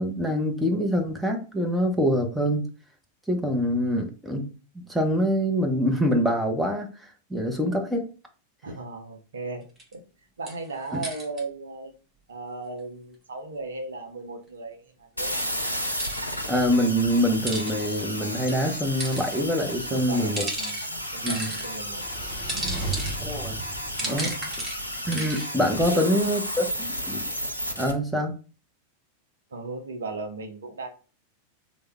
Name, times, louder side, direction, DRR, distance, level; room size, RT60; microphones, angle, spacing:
voice 1, 0.0-2.7 3.3-4.4 4.7-6.9 7.3-8.0 10.9-11.0 16.5-20.4 21.2-21.5 23.2-23.6 24.1-24.3 25.1-27.3 27.8-28.3, equal, ahead, 1 dB, 0.7 m, -25 dB
voice 2, 8.6-9.7 9.9-10.0 10.4-11.9 12.3-15.5 19.9-22.9 24.0-24.5 25.9-26.0 29.5-30.9, right 3 dB, 70° right, 5 dB, 0.6 m, -37 dB
sound 1, 9.8-9.9 10.5-11.4 15.7-16.2 17.2-17.7 18.5-19.3 20.1-21.7 22.2-25.5, right 1 dB, 20° right, 1.3 m, -35 dB
sound 2, 15.2-27.9, equal, 85° left, 0.5 m, -33 dB
sound 3, 21.3-24.7, right 2 dB, 25° left, 1.5 m, -36 dB
3.2 x 2.0 x 3.5 m, 0.35 s
figure-of-eight pair, 90°, 0 cm